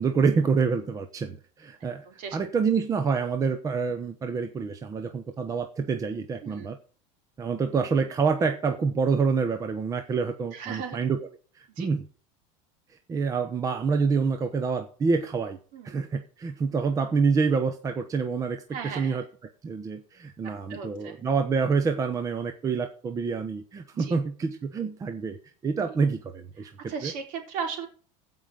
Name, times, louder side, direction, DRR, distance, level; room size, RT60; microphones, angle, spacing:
voice 1, 0.0-6.8 7.4-11.3 11.5-12.0 13.1-15.6 15.8-19.2 19.6-27.1, right 5 dB, 20° right, 8 dB, 0.9 m, -27 dB
voice 2, 1.8-2.4 6.4-6.7 10.5-11.0 11.8-11.9 15.7-16.0 18.7-19.3 20.4-21.2 23.9-24.2 25.9-26.0 26.6-27.9, right 6 dB, 55° right, 4 dB, 4.1 m, -37 dB
15.5 x 5.6 x 5.1 m, 0.41 s
supercardioid pair, 150°, 17 cm